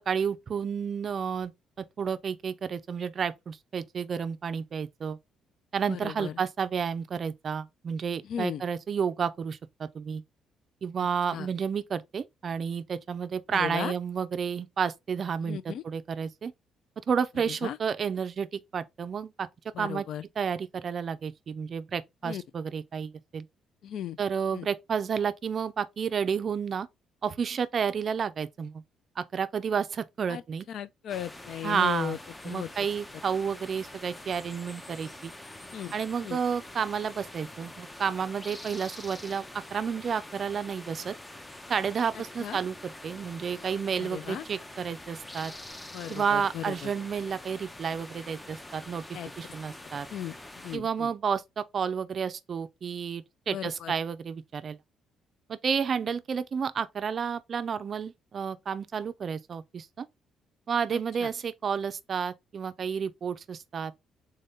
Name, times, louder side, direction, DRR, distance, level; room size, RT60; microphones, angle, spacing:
voice 1, 0.1-1.5 1.8-5.2 5.7-10.2 10.8-16.5 17.0-20.1 20.4-23.5 24.2-26.9 27.2-28.8 29.2-30.7 31.6-32.2 32.4-35.3 35.9-41.2 41.7-45.5 46.1-49.0 49.4-50.1 50.7-54.8 55.5-60.1 60.7-63.9, right 6 dB, 45° right, 0.4 m, -31 dB
voice 2, 5.9-6.3 8.3-8.6 11.3-11.5 13.5-13.9 15.4-15.8 17.6-17.8 19.7-20.2 22.2-22.4 23.8-24.2 24.5-24.7 30.3-30.4 30.7-32.2 32.4-32.7 35.7-35.9 36.2-36.4 42.4-42.6 44.0-44.4 45.9-46.9 49.1-49.3 50.1-50.4 50.6-51.1 53.5-53.9 61.2-61.3, left 10 dB, 65° left, 0.4 m, -36 dB
sound 1, 31.1-50.8, left 1 dB, 15° left, 0.5 m, -45 dB
3.7 x 2.7 x 3.5 m
cardioid pair, 115°, 0 cm